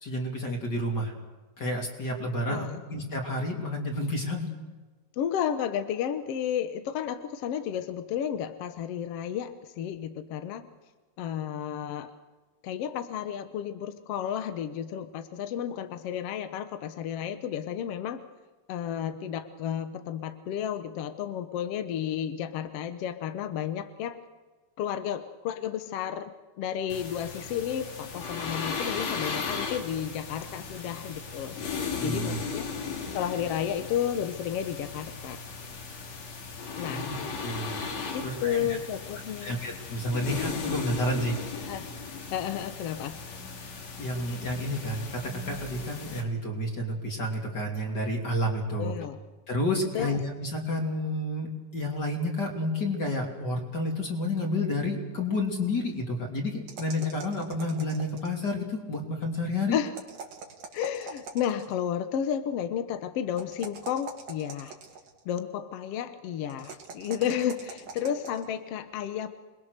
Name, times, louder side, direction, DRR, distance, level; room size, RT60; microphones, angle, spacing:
voice 1, 0.0-1.1 1.6-4.5 31.9-32.4 36.8-37.1 37.4-37.8 38.2-38.8 39.4-41.4 43.8-48.9 49.5-59.8, left 1 dB, 30° left, 1 dB, 3.3 m, -30 dB
voice 2, 2.5-2.8 5.2-10.7 11.2-12.1 12.6-18.2 18.7-24.2 24.8-26.3 26.6-31.6 32.0-32.7 33.1-35.4 36.8-37.1 38.1-39.6 41.5-41.9 42.3-43.2 48.8-49.2 49.9-50.2 59.7-59.9 60.7-64.8 65.2-69.3, left 9 dB, 70° left, 9 dB, 1.5 m, -32 dB
sound 1, 26.9-46.2, left 5 dB, 55° left, 3.3 m, -37 dB
sound 2, 56.7-58.5 59.9-61.8 63.4-65.2 66.5-68.4, right 4 dB, 90° right, 4.3 m, -43 dB
27.5 x 21.0 x 6.6 m, 1.3 s
omnidirectional pair, 4.0 m